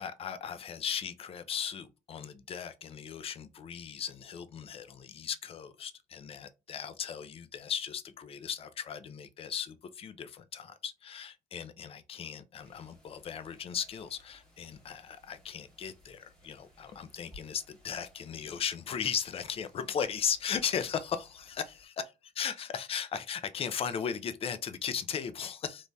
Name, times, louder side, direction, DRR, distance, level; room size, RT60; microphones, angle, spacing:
voice 1, 0.0-21.9 22.4-25.8, left 7 dB, 35° left, 0.4 m, -37 dB
sound 1, 12.6-21.8, left 1 dB, 5° left, 1.5 m, -60 dB
3.1 x 2.6 x 2.2 m
cardioid pair, 110°, 17 cm